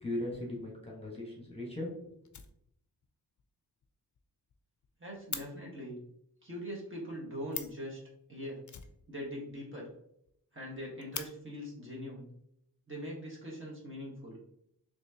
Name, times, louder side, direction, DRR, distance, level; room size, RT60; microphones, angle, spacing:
voice 1, 0.0-2.3, left 1 dB, 15° left, -3 dB, 1.2 m, -39 dB
Fire, 1.1-1.2 1.5-1.6 1.9-2.0 2.2-3.1 3.4-3.5 3.8-3.9 4.1-4.2 4.5-5.5 7.2-7.3 7.5-7.9 8.6-9.6 9.9-10.0 10.3-10.4 10.7-11.3 12.3-12.4 13.0-13.6, left 7 dB, 50° left, 0.5 m, -43 dB
voice 2, 5.0-6.0 6.4-8.0 8.3-8.6 9.1-9.9 10.5-12.3 12.9-14.4, equal, 30° right, -5 dB, 1.4 m, -42 dB
4.2 x 3.0 x 2.8 m, 0.74 s
wide cardioid pair, 65°, 40 cm